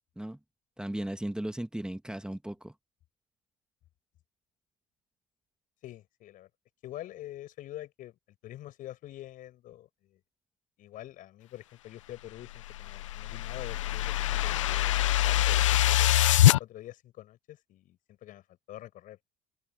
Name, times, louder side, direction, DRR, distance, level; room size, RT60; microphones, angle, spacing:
voice 1, 0.8-2.7, right 1 dB, 5° right, 1.8 m, -36 dB
voice 2, 5.8-6.5 6.8-8.2 8.4-10.2 10.8-14.9 15.2-16.1 16.6-19.2, left 14 dB, 60° left, 6.1 m, -46 dB
sound 1, 12.5-16.6, left 13 dB, 85° left, 0.6 m, -24 dB
hypercardioid pair, 65°, 16 cm